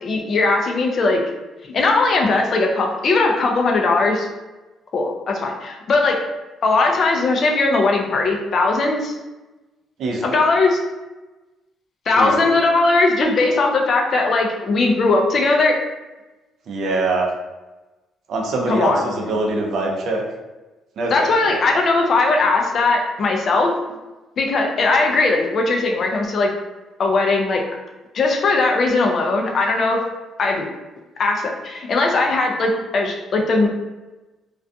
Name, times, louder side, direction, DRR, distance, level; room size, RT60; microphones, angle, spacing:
voice 1, 0.0-1.2 1.7-4.3 4.9-6.2 6.6-9.2 10.2-10.8 12.1-15.8 18.7-19.0 21.1-23.7 24.4-26.5 27.0-27.6 28.1-30.0 30.4-30.7 31.2-33.7, left 3 dB, 35° left, 1 dB, 0.4 m, -19 dB
voice 2, 10.0-10.4 12.2-12.5 16.7-17.3 18.3-20.2 21.0-21.6, right 2 dB, 55° right, 0 dB, 0.4 m, -23 dB
2.4 x 2.2 x 2.5 m, 1.1 s
cardioid pair, 175°, 0 cm